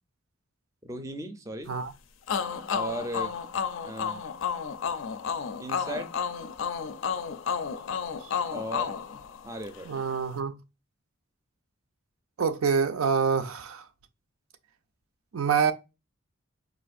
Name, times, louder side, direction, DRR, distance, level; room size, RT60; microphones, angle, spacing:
voice 1, 0.8-1.7 2.7-3.4 3.8-4.2 5.6-6.1 8.5-9.0 9.4-10.1, right 1 dB, 15° right, 0.4 m, -36 dB
sound 1, 2.3-9.9, left 6 dB, 65° left, 0.4 m, -32 dB
voice 2, 9.8-10.6 12.4-13.9 15.3-15.7, right 6 dB, 85° right, 0.5 m, -26 dB
4.2 x 2.5 x 2.4 m
head